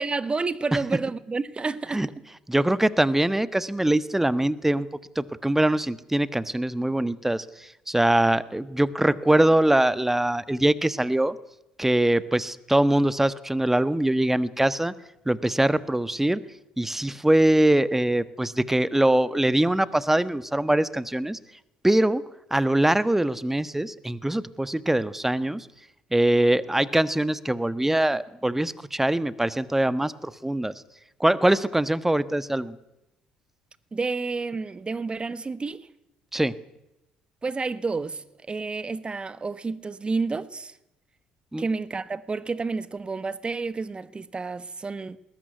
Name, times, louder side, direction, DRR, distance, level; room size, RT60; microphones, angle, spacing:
voice 1, 0.0-2.1 33.9-35.9 37.4-40.7 41.6-45.2, right 4 dB, 25° right, 1.4 m, -30 dB
voice 2, 2.5-4.9 5.1-11.4 11.8-14.9 15.2-16.4 16.8-21.4 21.8-22.2 22.5-25.7 26.1-30.7 31.2-32.8 36.3-36.5 41.5-41.6, right 1 dB, 10° right, 1.3 m, -23 dB
20.5 x 18.5 x 9.5 m
hypercardioid pair, 55°, 4 cm